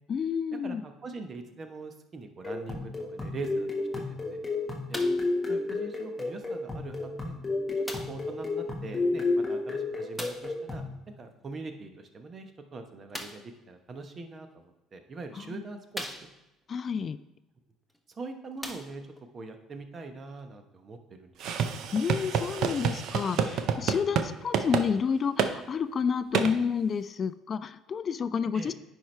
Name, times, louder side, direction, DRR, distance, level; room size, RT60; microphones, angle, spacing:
voice 1, 0.1-0.8 15.4-15.6 16.7-17.2 21.9-28.7, left 6 dB, 45° left, 14 dB, 0.3 m, -30 dB
voice 2, 0.6-4.4 4.9-5.0 5.5-7.4 7.8-10.8 11.2-16.3 18.1-19.0 19.3-21.6 28.5-28.7, right 3 dB, 40° right, 6 dB, 0.9 m, -43 dB
sound 1, 2.4-10.9, left 3 dB, 20° left, 1.5 m, -31 dB
sound 2, 4.9-5.3 6.2-6.3 7.8-8.3 10.1-10.6 13.1-13.5 14.5-14.6 15.2-15.3 15.9-16.6 17.9-18.0 18.5-19.3 20.1-20.2, equal, ahead, 1.0 m, -40 dB
sound 3, 21.4-24.3 24.5-24.9 25.4-25.5 26.3-26.5, right 7 dB, 65° right, 0.6 m, -28 dB
9.8 x 4.7 x 3.2 m, 0.97 s
hypercardioid pair, 65°, 0 cm